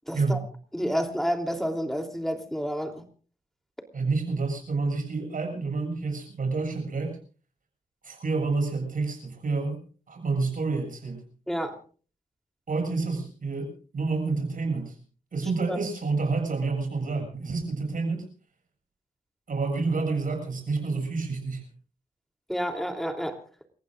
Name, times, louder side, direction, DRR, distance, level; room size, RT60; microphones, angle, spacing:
voice 1, 0.1-0.4 0.7-3.0 11.5-11.8 15.7-15.8 22.5-23.4, equal, ahead, 4 dB, 3.3 m, -29 dB
voice 2, 3.9-7.2 8.0-9.8 10.1-11.2 12.7-14.9 15.3-18.3 19.5-21.6, right 3 dB, 65° right, 4 dB, 7.2 m, -28 dB
29.5 x 15.5 x 2.5 m, 0.40 s
cardioid pair, 70°, 15 cm